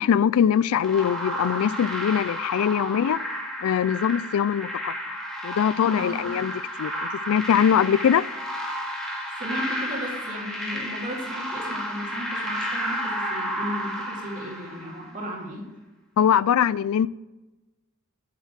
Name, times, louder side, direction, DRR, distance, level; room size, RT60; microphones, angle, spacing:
voice 1, 0.0-3.2 3.6-4.9 5.4-6.5 6.8-6.9 7.3-8.2 16.2-17.1, left 8 dB, 75° left, 0.3 m, -22 dB
sound 1, 0.8-15.1, equal, ahead, 2.1 m, -32 dB
voice 2, 6.0-6.3 9.4-15.6, equal, 40° right, 3.1 m, -35 dB
7.6 x 7.3 x 7.3 m
head